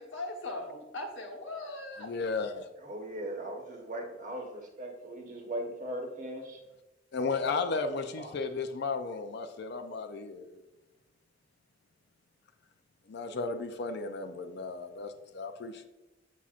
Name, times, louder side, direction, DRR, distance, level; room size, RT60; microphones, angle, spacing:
voice 1, 0.0-2.1, left 2 dB, 80° left, 2 dB, 1.1 m, -39 dB
voice 2, 2.0-2.7 7.1-10.6 13.1-15.9, left 4 dB, 60° left, 7 dB, 0.4 m, -34 dB
voice 3, 2.8-6.6 7.3-7.8 8.1-8.3, right 1 dB, 45° right, 2 dB, 1.0 m, -39 dB
7.3 x 5.6 x 2.4 m, 1.0 s
head